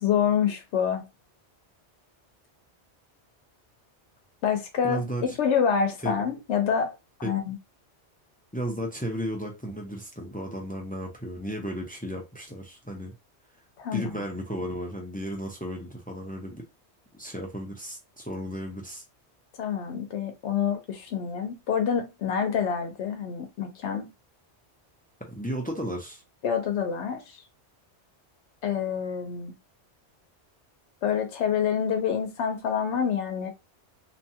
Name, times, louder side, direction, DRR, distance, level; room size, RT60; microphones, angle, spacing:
voice 1, 0.0-1.0 4.4-5.0 5.4-6.9 7.2-7.6 13.8-14.1 19.6-24.1 26.4-27.2 28.6-29.5 31.0-33.5, left 7 dB, 80° left, 1.0 m, -27 dB
voice 2, 4.8-5.2 6.0-6.2 7.2-7.3 8.5-13.1 13.9-16.6 17.1-19.0 25.3-26.2, equal, 10° left, 0.4 m, -34 dB
2.9 x 2.2 x 2.7 m
omnidirectional pair, 1.1 m